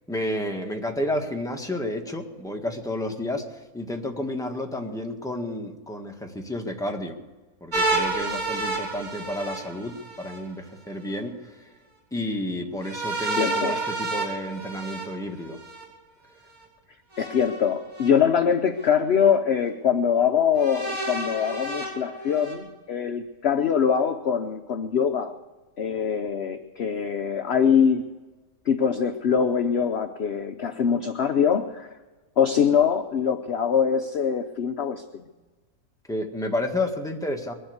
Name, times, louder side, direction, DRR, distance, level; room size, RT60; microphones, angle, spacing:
voice 1, 0.1-7.2 7.6-11.7 12.1-15.6 36.1-37.5, left 1 dB, ahead, 2 dB, 1.6 m, -31 dB
sound 1, 7.7-10.4 12.8-15.8 17.1-18.1 18.8-18.9 20.6-22.5, right 2 dB, 60° right, 5.9 m, -30 dB
voice 2, 13.4-13.8 17.2-25.4 25.8-28.1 28.7-31.9 32.4-35.3, left 7 dB, 55° left, 8 dB, 0.9 m, -23 dB
21.5 x 7.9 x 8.1 m, 1.2 s
omnidirectional pair, 1.6 m